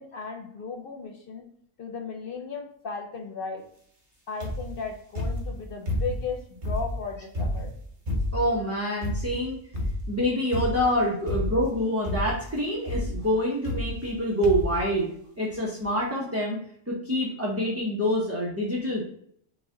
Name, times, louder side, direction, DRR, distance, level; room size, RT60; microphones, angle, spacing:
voice 1, 0.0-1.4 1.8-3.7 4.3-7.7, left 5 dB, 60° left, 4 dB, 0.6 m, -36 dB
pasos gruesos, 4.4-4.8 5.2-6.3 6.6-8.6 9.0-9.4 9.7-10.2 10.5-10.9 11.3-11.8 12.0-12.5 12.9-13.2 13.6-14.2 14.4-14.8 15.5-15.6 15.8-15.9, left 1 dB, 40° right, 1.0 m, -30 dB
voice 2, 8.3-9.6 10.1-15.1 15.4-16.6 16.9-19.0, equal, 15° right, -5 dB, 0.7 m, -26 dB
5.0 x 2.4 x 3.7 m, 0.66 s
omnidirectional pair, 1.3 m